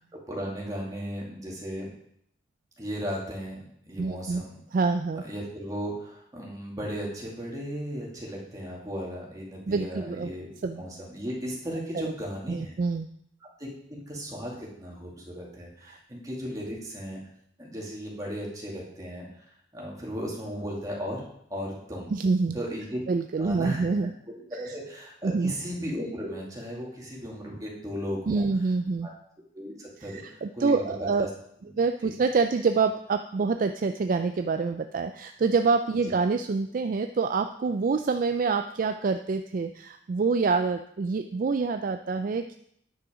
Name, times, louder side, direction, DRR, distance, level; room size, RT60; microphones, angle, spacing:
voice 1, 0.3-1.9 2.8-4.6 5.2-10.5 10.8-12.7 13.6-17.2 17.6-19.3 19.7-21.2 21.5-22.1 22.5-23.0 23.4-23.9 24.5-28.5 29.0-29.1 29.5-30.8 31.2-31.3 31.6-31.7 32.0-32.1, equal, 20° right, -3 dB, 2.3 m, -36 dB
voice 2, 4.0-4.4 4.7-5.2 9.7-10.3 10.6-10.8 12.5-13.1 22.1-22.6 23.1-24.1 24.5-24.6 25.2-25.5 28.3-29.1 30.0-31.3 31.8-42.6, right 4 dB, 45° right, 7 dB, 0.3 m, -26 dB
9.6 x 6.1 x 5.1 m, 0.71 s
head